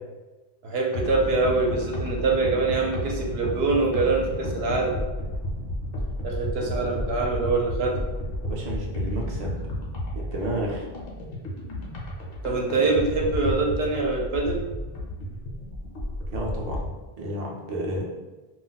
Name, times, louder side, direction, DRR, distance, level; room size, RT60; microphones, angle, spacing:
voice 1, 0.6-4.9 6.2-8.0 12.4-14.6, right 3 dB, 75° right, 0 dB, 0.8 m, -24 dB
sound 1, 0.9-17.0, left 1 dB, 65° left, 0.8 m, -32 dB
voice 2, 6.6-7.1 8.4-9.6 10.1-10.8 16.3-16.8 17.2-18.0, right 1 dB, 50° right, -2 dB, 0.5 m, -32 dB
2.3 x 2.1 x 3.8 m, 1.2 s
omnidirectional pair, 1.1 m